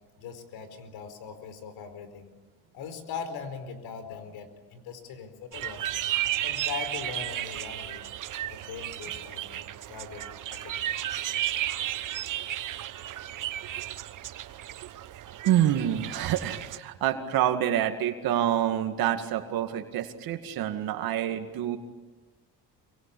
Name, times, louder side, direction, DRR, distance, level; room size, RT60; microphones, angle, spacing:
voice 1, 0.2-2.3 2.7-6.0 6.4-8.0 8.5-10.2 10.5-10.9, left 6 dB, 80° left, 10 dB, 4.7 m, -40 dB
sound 1, 5.5-16.8, right 13 dB, 60° right, 1.2 m, -34 dB
voice 2, 15.4-21.8, right 11 dB, 75° right, 6 dB, 2.2 m, -27 dB
27.0 x 24.5 x 8.6 m, 1.3 s
cardioid pair, 100°, 36 cm